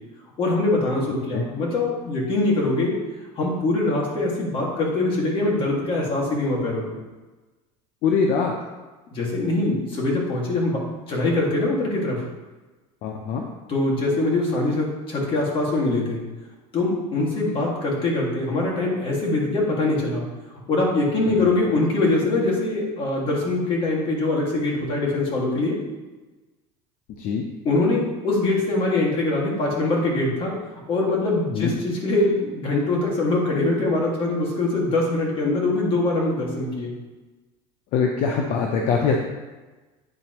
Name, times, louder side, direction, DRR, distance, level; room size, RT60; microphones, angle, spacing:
voice 1, 0.4-3.0 3.4-7.0 9.1-10.8 11.1-12.2 13.7-16.2 16.7-20.3 20.7-25.8 27.6-30.6 30.9-36.9, left 2 dB, 35° left, -3 dB, 2.0 m, -23 dB
voice 2, 8.0-8.5 13.0-13.4 17.6-17.7 21.3-21.6 27.2-27.4 31.5-31.7 37.9-39.2, left 5 dB, 60° left, 1 dB, 0.7 m, -23 dB
9.8 x 4.1 x 3.0 m, 1.2 s
cardioid pair, 130°, 15 cm